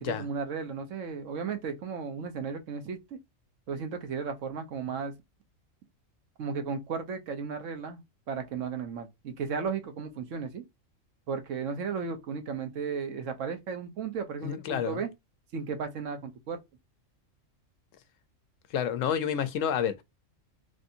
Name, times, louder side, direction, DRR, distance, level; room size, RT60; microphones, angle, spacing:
voice 1, 0.0-3.0 3.7-5.1 6.4-8.0 8.3-10.6 11.3-15.1 15.5-16.6, right 5 dB, 75° right, 1.1 m, -34 dB
voice 2, 14.4-15.0 18.7-20.0, left 8 dB, 80° left, 0.9 m, -29 dB
3.3 x 2.6 x 2.6 m
omnidirectional pair, 1.3 m